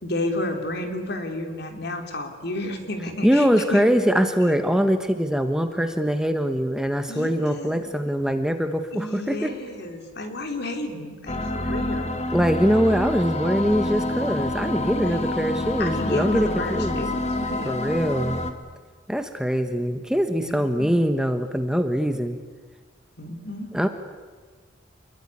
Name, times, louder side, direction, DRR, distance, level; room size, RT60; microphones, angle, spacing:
voice 1, 0.0-3.9 4.4-4.6 7.1-7.9 8.9-12.2 14.9-15.3 15.8-17.8 20.4-20.9 23.2-23.7, left 1 dB, 60° left, 5 dB, 3.7 m, -32 dB
voice 2, 3.2-9.5 12.3-17.0 17.6-18.4 19.1-22.4 23.7-23.9, equal, 5° right, 7 dB, 1.4 m, -23 dB
sound 1, 11.3-18.5, left 1 dB, 35° left, 2.0 m, -27 dB
27.5 x 21.5 x 10.0 m, 1.4 s
head